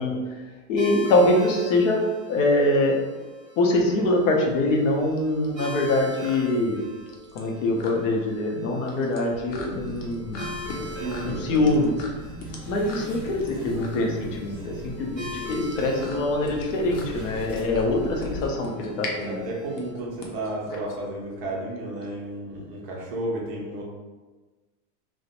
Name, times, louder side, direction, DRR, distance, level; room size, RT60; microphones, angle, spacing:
voice 1, 0.0-2.0 2.3-3.1 3.6-6.8 7.3-12.0 12.7-19.5, left 2 dB, 55° left, 0 dB, 0.6 m, -24 dB
sound 1, 0.8-19.9, equal, 5° left, 0.6 m, -41 dB
sound 2, 3.9-21.5, left 3 dB, 90° left, 0.8 m, -42 dB
sound 3, 9.5-18.5, left 1 dB, 30° left, 0.9 m, -39 dB
voice 2, 10.7-11.7 17.6-17.8 19.2-23.8, right 1 dB, 40° right, -3 dB, 0.5 m, -33 dB
2.4 x 2.1 x 2.8 m, 1.3 s
supercardioid pair, 170°, 48 cm